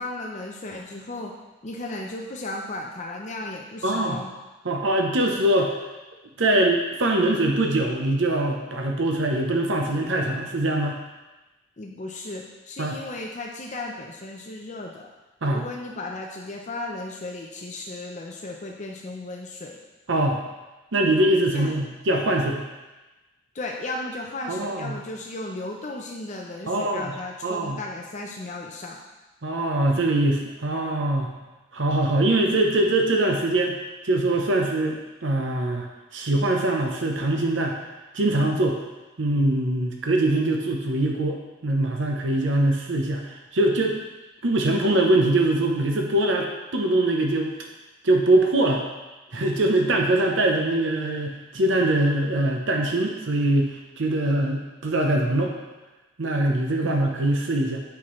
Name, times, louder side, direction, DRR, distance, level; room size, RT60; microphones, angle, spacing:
voice 1, 0.0-1.3 1.6-4.3 11.8-15.1 15.5-19.8 21.5-21.8 23.5-29.0 56.8-57.1, left 2 dB, 35° left, 0 dB, 0.6 m, -35 dB
voice 2, 3.8-4.2 4.6-5.8 6.4-11.0 12.8-13.0 15.4-15.6 20.1-20.4 20.9-22.6 24.5-25.0 26.7-27.1 27.4-27.8 29.4-31.3 31.7-33.8 34.0-35.9 36.1-37.8 38.1-38.8 39.2-44.0 44.4-47.5 48.0-48.8 49.3-55.5 56.2-57.8, right 1 dB, 65° right, 2 dB, 0.8 m, -23 dB
8.6 x 5.8 x 3.1 m, 1.1 s
head